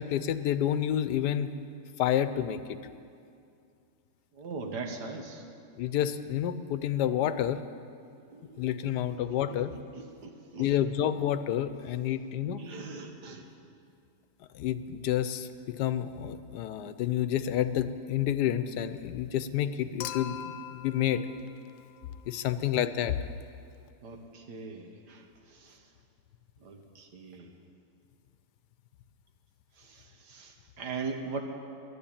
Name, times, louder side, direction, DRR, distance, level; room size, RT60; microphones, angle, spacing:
voice 1, 0.0-1.5 2.0-2.8 5.8-7.6 8.6-9.7 10.6-12.6 14.5-21.2 22.3-23.2, left 10 dB, 90° left, 12 dB, 1.2 m, -29 dB
voice 2, 4.4-5.4 8.3-8.6 9.9-10.7 12.6-13.5 24.0-25.2 25.6-25.8 26.6-27.5 29.8-31.4, right 4 dB, 85° right, 4 dB, 1.8 m, -40 dB
Human group actions / Chink clink / Liquid, 20.0-22.4 23.9-24.0, left 10 dB, 70° left, 0.8 m, -42 dB
11.5 x 11.0 x 8.7 m, 2.4 s
omnidirectional pair, 1.7 m